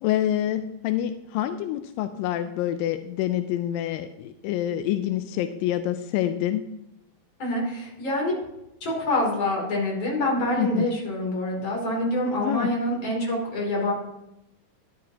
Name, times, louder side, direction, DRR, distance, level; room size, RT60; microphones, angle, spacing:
voice 1, 0.0-6.7 10.6-10.9 12.4-12.7, left 12 dB, 85° left, 9 dB, 2.2 m, -27 dB
voice 2, 7.4-8.4 8.8-13.9, left 1 dB, 35° left, -2 dB, 3.5 m, -26 dB
12.0 x 11.5 x 2.9 m, 0.89 s
omnidirectional pair, 4.0 m